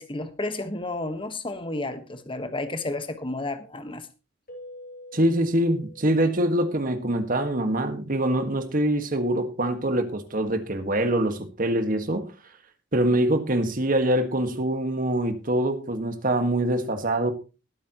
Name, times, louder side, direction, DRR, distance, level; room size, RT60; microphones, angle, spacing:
voice 1, 0.0-4.1, left 2 dB, 25° left, 1.3 m, -32 dB
Keyboard (musical), 4.5-7.0, left 1 dB, 50° left, 3.3 m, -46 dB
voice 2, 5.1-12.3 12.9-17.3, right 1 dB, 45° right, 1.7 m, -24 dB
20.5 x 8.6 x 3.0 m
head